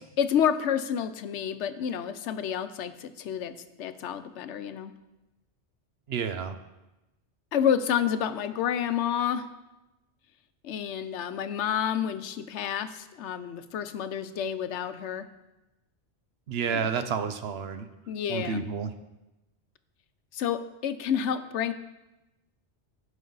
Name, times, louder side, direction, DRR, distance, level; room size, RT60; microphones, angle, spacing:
voice 1, 0.2-4.9 7.5-9.5 10.6-15.3 16.7-16.9 18.1-18.6 20.3-21.7, left 8 dB, 80° left, 11 dB, 0.9 m, -29 dB
voice 2, 6.1-6.6 16.5-17.9 18.3-18.9, right 6 dB, 65° right, 9 dB, 0.9 m, -30 dB
16.0 x 5.4 x 3.9 m, 0.99 s
omnidirectional pair, 1.2 m